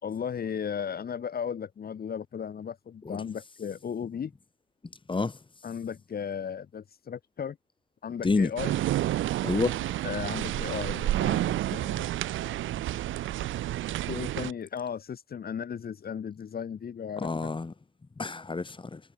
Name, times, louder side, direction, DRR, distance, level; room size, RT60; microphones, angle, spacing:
voice 1, 0.0-4.3 5.6-7.6 8.0-8.8 10.0-12.1 14.1-17.5, left 7 dB, 50° left, 4.1 m, -35 dB
sound 1, 8.6-14.5, right 14 dB, 80° right, 1.1 m, -30 dB
voice 2, 9.4-9.8 17.2-17.7 18.2-19.0, left 3 dB, 25° left, 5.6 m, -28 dB
cardioid pair, 90°, 20 cm